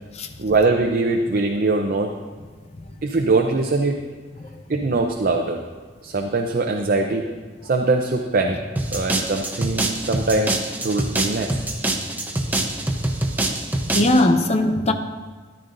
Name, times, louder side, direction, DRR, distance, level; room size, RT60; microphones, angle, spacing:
voice 1, 0.4-2.1 3.0-4.0 4.7-5.6 6.0-7.3 7.6-8.6 8.9-11.5, right 3 dB, 55° right, 3 dB, 0.6 m, -22 dB
sound 1, 8.8-14.2, right 1 dB, 10° right, 0.8 m, -25 dB
voice 2, 13.9-14.9, left 1 dB, 35° left, 7 dB, 0.7 m, -18 dB
13.0 x 11.0 x 2.6 m, 1.5 s
head